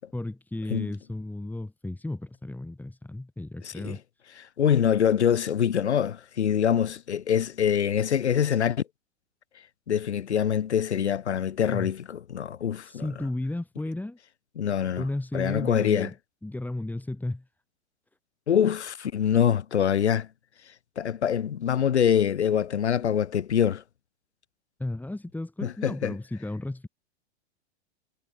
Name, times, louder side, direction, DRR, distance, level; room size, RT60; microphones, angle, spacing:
voice 1, 0.1-4.0 11.7-11.9 12.8-14.2 15.0-16.1 16.4-17.5 24.8-26.9, left 2 dB, 5° left, 7.0 m, -34 dB
voice 2, 3.6-4.0 4.4-8.8 9.9-13.1 14.6-15.0 15.3-16.1 18.5-20.3 21.0-23.8 25.6-26.1, left 8 dB, 75° left, 2.3 m, -24 dB
hypercardioid pair, 105°, 34 cm